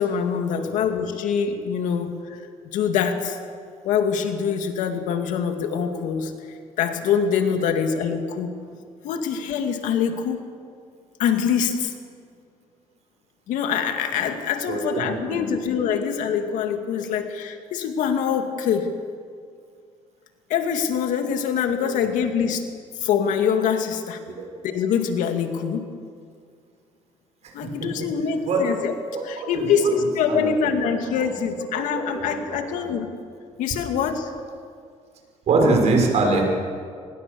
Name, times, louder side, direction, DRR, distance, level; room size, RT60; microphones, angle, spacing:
voice 1, 0.0-2.4 2.7-3.4 3.8-6.3 6.8-8.5 9.0-10.5 11.2-11.9 13.5-19.0 20.5-22.7 23.0-24.2 24.6-25.9 27.5-28.9 29.2-33.1 33.6-34.3, left 7 dB, 85° left, 6 dB, 2.3 m, -24 dB
voice 2, 14.7-15.5 15.7-15.8 17.0-17.1 21.8-21.9 27.4-27.9 28.4-28.7 29.1-29.9 30.3-30.7 31.2-31.3 31.7-32.9 35.5-36.5, right 3 dB, 60° right, 1 dB, 6.1 m, -24 dB
24.5 x 20.5 x 7.0 m, 2.2 s
cardioid pair, 110°, 13 cm